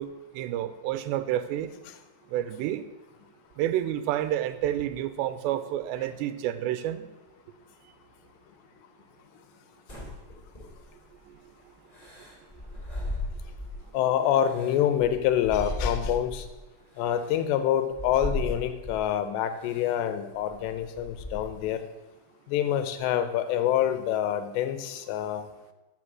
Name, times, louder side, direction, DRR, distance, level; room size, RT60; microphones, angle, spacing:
voice 1, 0.0-1.7 2.3-2.9 3.6-7.1 11.2-11.4 12.7-13.1, right 12 dB, 85° right, 12 dB, 2.9 m, -30 dB
sound 1, 9.9-11.1 11.9-13.9 14.3-16.5 17.2-17.3 17.9-19.1 19.6-19.9 20.4-21.7, left 1 dB, 10° left, 2.3 m, -36 dB
voice 2, 13.9-16.5 17.0-21.8 22.5-25.5, left 10 dB, 80° left, 9 dB, 3.0 m, -26 dB
14.0 x 6.5 x 6.2 m, 1.1 s
omnidirectional pair, 5.0 m